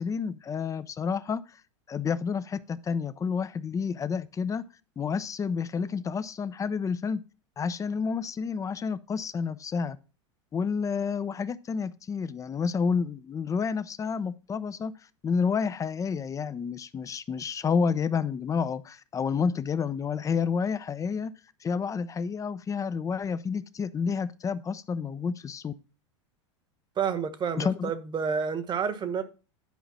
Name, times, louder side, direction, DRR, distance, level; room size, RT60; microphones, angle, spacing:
voice 1, 0.0-1.4 1.9-4.7 5.0-7.2 7.6-10.0 10.5-14.9 15.2-21.3 21.6-25.7 27.6-27.9, left 6 dB, 20° left, 0.7 m, -29 dB
voice 2, 27.0-29.2, right 6 dB, 30° right, 1.3 m, -29 dB
10.5 x 5.0 x 4.2 m
hypercardioid pair, 100°, 16 cm